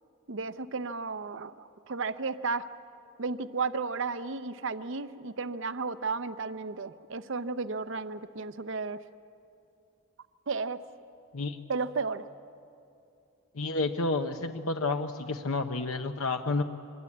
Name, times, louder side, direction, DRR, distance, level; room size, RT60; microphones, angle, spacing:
voice 1, 0.3-2.7 3.2-9.0 10.5-10.8 11.7-12.3, right 4 dB, 55° right, 13 dB, 0.6 m, -33 dB
voice 2, 13.5-16.6, left 3 dB, 75° left, 6 dB, 0.8 m, -30 dB
24.5 x 22.0 x 8.6 m, 2.6 s
head